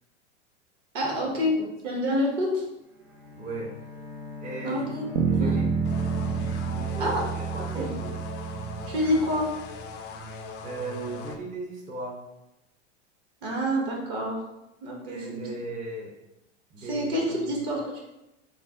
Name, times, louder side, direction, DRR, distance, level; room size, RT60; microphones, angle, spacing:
voice 1, 0.9-1.6 1.8-2.6 4.6-5.0 5.3-5.6 7.0-7.2 7.7-7.9 8.9-9.5 13.4-14.4 14.8-15.4 16.8-18.0, equal, 55° right, -1 dB, 1.2 m, -27 dB
Bowed string instrument, 2.8-7.6, left 4 dB, 35° right, 0.9 m, -42 dB
voice 2, 3.3-3.7 4.4-4.9 5.3-5.7 6.6-8.2 10.6-12.2 15.0-16.1 16.7-17.5, right 2 dB, 20° right, -2 dB, 0.5 m, -37 dB
Bass guitar, 5.2-9.6, right 5 dB, 85° right, 0.5 m, -29 dB
sound 1, 5.8-11.4, left 3 dB, 35° left, 0.4 m, -40 dB
3.2 x 2.1 x 3.5 m, 0.93 s
hypercardioid pair, 100°, 34 cm